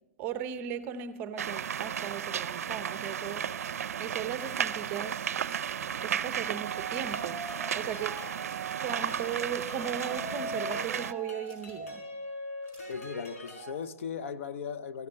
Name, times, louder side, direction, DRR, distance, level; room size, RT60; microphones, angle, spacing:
voice 1, 0.2-5.3 6.0-8.2 8.8-12.0, right 8 dB, 25° right, 0.7 m, -37 dB
sound 1, 1.4-11.1, right 8 dB, 75° right, 0.5 m, -34 dB
sound 2, 4.2-4.7 5.2-5.9 6.2-6.4 6.7-7.5 8.4-9.0 9.7-10.3 11.4-11.8 12.6-13.1, right 1 dB, 20° left, 5.6 m, -60 dB
sound 3, 6.3-13.7, right 1 dB, 85° left, 4.3 m, -41 dB
voice 2, 12.9-15.1, left 6 dB, 60° left, 0.7 m, -37 dB
14.5 x 8.5 x 6.5 m
hypercardioid pair, 150°, 8 cm